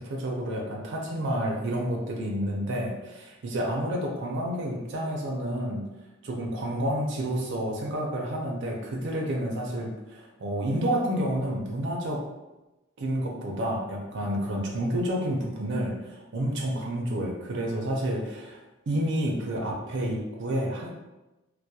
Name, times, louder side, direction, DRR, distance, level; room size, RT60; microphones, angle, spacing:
voice 1, 0.0-5.8 6.2-12.2 13.0-20.9, right 1 dB, 55° right, -1 dB, 0.4 m, -29 dB
2.2 x 2.1 x 2.7 m, 1.0 s
head